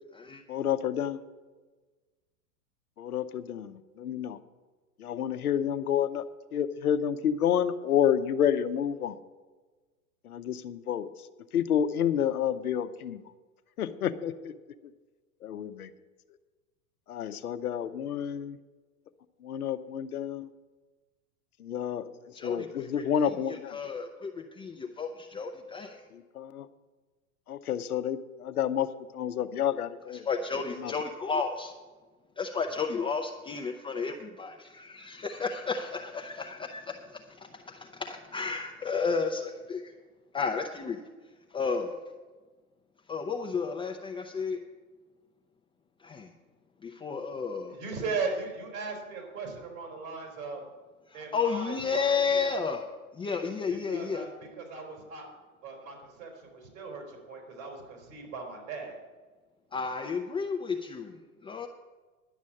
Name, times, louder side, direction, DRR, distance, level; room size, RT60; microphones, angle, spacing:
voice 1, 0.5-1.2 3.0-4.4 5.0-6.2 6.5-9.2 10.2-11.1 11.5-13.2 13.8-14.5 15.4-15.9 17.1-18.6 19.4-20.5 21.6-23.8 26.1-26.7 27.5-28.9 29.1-30.3 30.8-30.9, left 9 dB, 85° left, 11 dB, 0.8 m, -29 dB
voice 2, 22.3-23.0 23.5-24.3 24.6-26.0 30.3-31.7 32.4-39.9 40.3-41.0 41.5-42.0 43.1-44.6 46.0-46.3 46.8-47.8 51.1-52.8 53.1-54.3 59.7-61.7, left 5 dB, 10° left, 2 dB, 0.5 m, -32 dB
voice 3, 47.7-50.6 51.1-52.6 53.9-54.3 54.6-55.3 55.6-59.0, right 4 dB, 70° right, 1 dB, 3.8 m, -38 dB
11.0 x 6.3 x 8.5 m, 1.3 s
hypercardioid pair, 110°, 43 cm